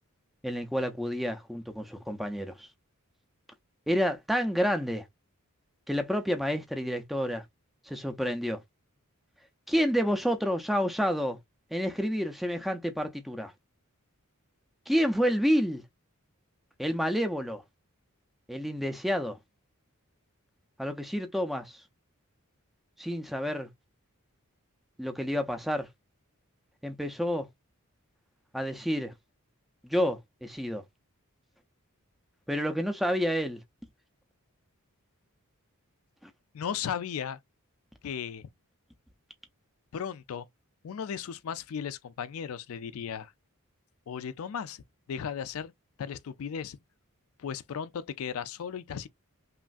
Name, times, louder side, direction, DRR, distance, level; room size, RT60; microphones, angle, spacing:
voice 1, 0.4-2.7 3.9-5.0 5.9-7.4 7.9-8.6 9.7-11.4 11.7-13.5 14.9-15.8 16.8-17.6 18.5-19.4 20.8-21.8 23.0-23.7 25.0-25.9 26.8-27.5 28.5-29.1 29.8-30.8 32.5-33.6, equal, ahead, 0.4 m, -29 dB
voice 2, 36.5-37.4 38.0-38.5 39.9-40.5 40.8-43.3 44.1-44.8 45.1-45.7 46.0-46.8 47.4-49.1, left 7 dB, 70° left, 0.4 m, -36 dB
3.1 x 2.4 x 2.5 m
head